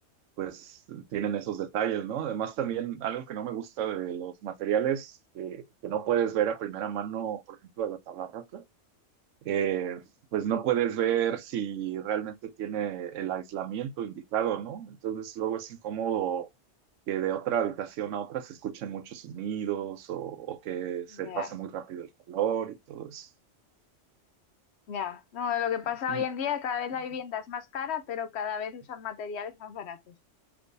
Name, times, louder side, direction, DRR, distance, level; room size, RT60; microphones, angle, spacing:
voice 1, 0.4-8.6 9.4-10.0 10.3-16.5 17.1-23.3 26.1-26.2, right 10 dB, 85° right, 1.0 m, -31 dB
voice 2, 21.1-21.5 24.9-30.1, left 8 dB, 65° left, 0.8 m, -33 dB
3.4 x 3.0 x 2.5 m
omnidirectional pair, 1.3 m